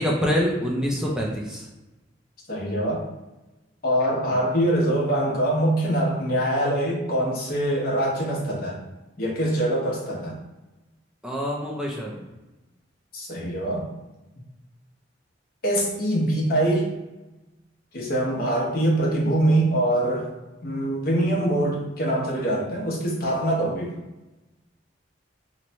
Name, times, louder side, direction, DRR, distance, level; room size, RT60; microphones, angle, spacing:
voice 1, 0.0-1.7 11.2-12.3, equal, 5° right, -3 dB, 0.5 m, -26 dB
voice 2, 2.5-3.0 3.8-8.8 9.2-10.3 13.1-13.9 15.6-16.9 17.9-20.3 20.6-24.0, right 1 dB, 55° left, -3 dB, 0.9 m, -24 dB
3.0 x 2.2 x 4.0 m, 1.1 s
head